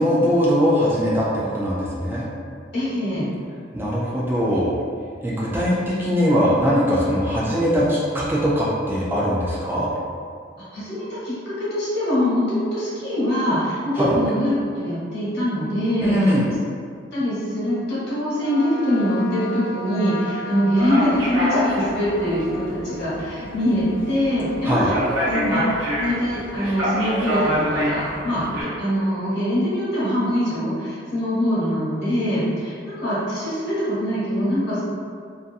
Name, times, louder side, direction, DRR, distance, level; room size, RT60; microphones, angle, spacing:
voice 1, 0.0-2.3 3.7-4.7 5.2-9.9 13.9-14.1 16.0-16.5 24.6-24.9, equal, 10° right, -7 dB, 0.3 m, -21 dB
voice 2, 2.7-3.3 10.7-16.3 17.1-28.4 28.8-34.8, equal, 60° left, -10 dB, 1.2 m, -23 dB
Trumpet, 18.4-27.7, left 1 dB, 85° left, 0.4 m, -37 dB
sound 1, 20.8-28.6, equal, 90° right, 0.8 m, -26 dB
2.7 x 2.5 x 2.2 m, 2.2 s
head